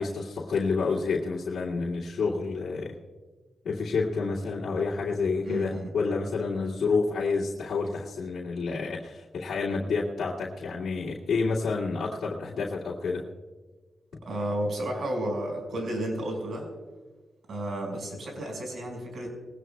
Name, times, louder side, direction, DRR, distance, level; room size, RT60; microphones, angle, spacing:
voice 1, 0.0-2.9 3.6-13.2, left 4 dB, 90° left, -6 dB, 2.3 m, -29 dB
voice 2, 5.4-5.9 14.3-16.7 17.5-19.3, right 1 dB, 70° right, 2 dB, 5.4 m, -32 dB
21.5 x 17.5 x 2.3 m, 1.4 s
cardioid pair, 95°, 0 cm